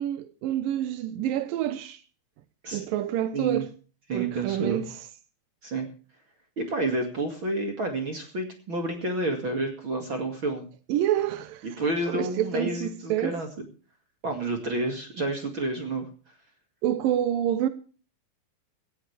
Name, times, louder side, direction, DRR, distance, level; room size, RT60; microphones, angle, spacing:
voice 1, 0.0-2.0 2.7-3.7 4.1-5.0 10.9-11.8 12.1-13.4 16.8-17.7, right 11 dB, 85° right, 1.9 m, -27 dB
voice 2, 4.1-4.8 5.6-5.9 6.6-10.7 11.6-13.5 14.2-16.1, right 2 dB, 40° right, 2.1 m, -29 dB
17.5 x 14.5 x 3.4 m
omnidirectional pair, 5.2 m